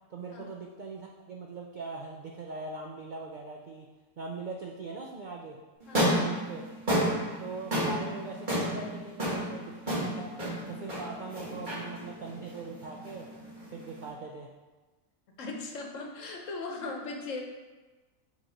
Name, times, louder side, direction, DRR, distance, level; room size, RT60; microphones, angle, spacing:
voice 1, 0.1-3.9 4.2-5.6 6.2-6.6 7.4-10.4 10.7-13.3 13.7-14.5, right 4 dB, 65° right, 0 dB, 0.4 m, -41 dB
sound 1, 5.8-14.1, equal, 35° right, 1.8 m, -32 dB
voice 2, 5.9-6.4 15.4-17.4, left 3 dB, 65° left, 1 dB, 1.2 m, -38 dB
6.3 x 3.1 x 5.0 m, 1.3 s
omnidirectional pair, 1.4 m